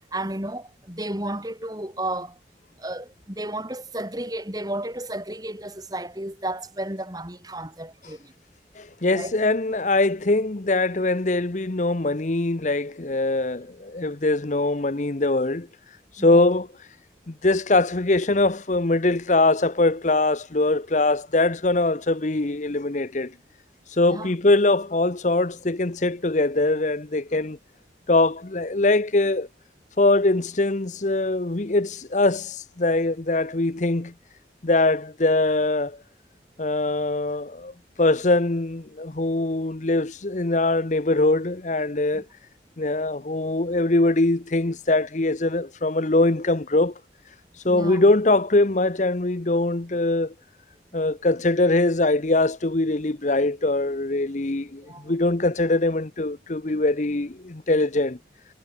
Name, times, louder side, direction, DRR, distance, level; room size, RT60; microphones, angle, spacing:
voice 1, 0.1-2.4 2.8-8.3 9.1-9.4 16.2-16.5 24.1-24.3 42.1-42.2 47.7-48.0 54.9-55.1, right 1 dB, 20° right, 6.2 m, -33 dB
voice 2, 8.7-17.0 17.3-23.3 23.9-27.6 28.1-29.5 30.0-34.1 34.6-36.0 36.6-42.2 42.8-47.0 47.3-50.3 50.9-58.2, left 2 dB, 40° left, 0.9 m, -22 dB
head